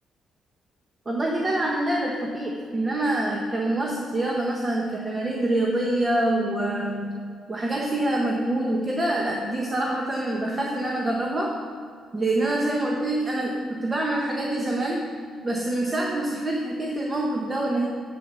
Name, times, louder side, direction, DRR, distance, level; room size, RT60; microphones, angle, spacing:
voice 1, 1.0-7.2 7.5-11.6 12.1-15.1 15.4-17.9, right 1 dB, 25° right, -1 dB, 1.2 m, -26 dB
7.6 x 7.1 x 6.8 m, 2.2 s
cardioid pair, 90°, 0 cm